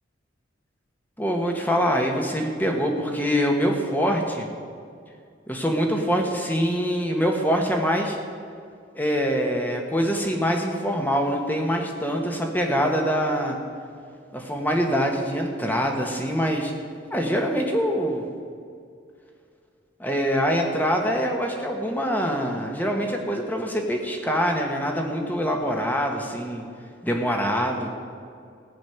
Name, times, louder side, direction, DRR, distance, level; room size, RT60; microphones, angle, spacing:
voice 1, 1.2-4.5 5.5-8.2 8.9-13.6 14.3-16.7 17.1-18.3 20.0-26.6 27.0-27.9, equal, 10° left, 2 dB, 1.3 m, -24 dB
15.5 x 6.3 x 9.3 m, 2.3 s
head